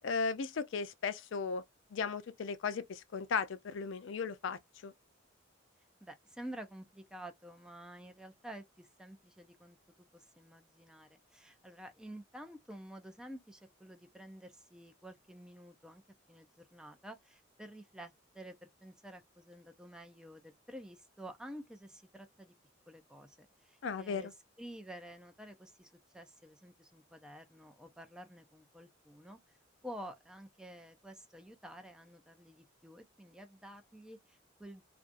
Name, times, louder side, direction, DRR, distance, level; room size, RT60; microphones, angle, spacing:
voice 1, 0.0-1.6 1.9-4.9 23.8-24.3, left 5 dB, 65° left, 0.4 m, -36 dB
voice 2, 6.0-9.8 10.1-16.0 16.3-22.5 22.9-24.3 24.6-29.6 29.8-34.8, right 1 dB, 5° right, 0.4 m, -50 dB
2.6 x 2.3 x 2.5 m
head